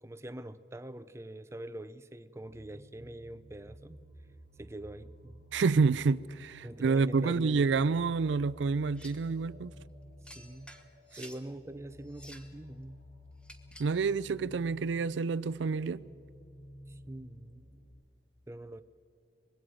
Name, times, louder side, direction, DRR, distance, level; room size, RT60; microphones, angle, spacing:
voice 1, 0.0-4.0 4.6-5.4 6.6-7.8 10.3-10.7 11.2-13.0 16.9-17.7 18.5-18.8, right 1 dB, 15° right, 0.5 m, -44 dB
sound 1, 2.4-17.9, equal, 60° left, 3.1 m, -53 dB
voice 2, 5.5-9.7 13.8-16.0, right 4 dB, 80° right, 0.4 m, -28 dB
sound 2, 9.0-9.3 10.2-11.5 12.0-12.6 13.4-14.0, equal, 5° left, 1.2 m, -52 dB
24.5 x 21.0 x 5.1 m
head